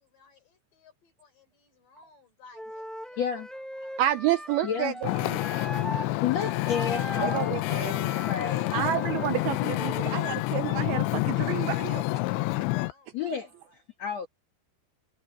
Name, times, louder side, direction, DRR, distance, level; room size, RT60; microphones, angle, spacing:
voice 1, 0.0-4.0 12.9-13.8, left 4 dB, 50° left, 6.3 m, -58 dB
Wind instrument woodwind instrument, 2.5-6.1 6.4-10.2, equal, ahead, 2.2 m, -40 dB
voice 2, 3.2-3.5 4.6-4.9 5.9-9.2 13.1-13.5 14.0-14.3, left 7 dB, 65° left, 1.6 m, -32 dB
voice 3, 4.0-5.4 7.2-8.1 8.7-12.0 12.8-12.9, right 13 dB, 85° right, 2.3 m, -30 dB
Wind / Ocean, 5.0-12.9, left 20 dB, 85° left, 3.0 m, -28 dB
omnidirectional pair, 5.1 m